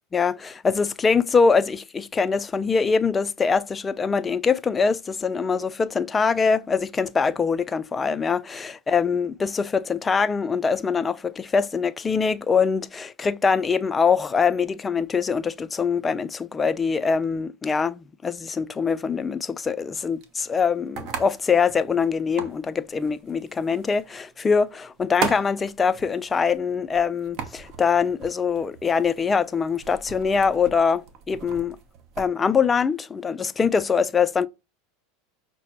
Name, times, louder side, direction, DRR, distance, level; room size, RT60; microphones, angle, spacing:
voice 1, 0.1-31.8 32.2-34.5, left 5 dB, 20° left, 0.3 m, -23 dB
sound 1, 19.8-32.3, right 6 dB, 50° right, 0.8 m, -38 dB
5.7 x 2.0 x 2.8 m
hypercardioid pair, 110°, 0 cm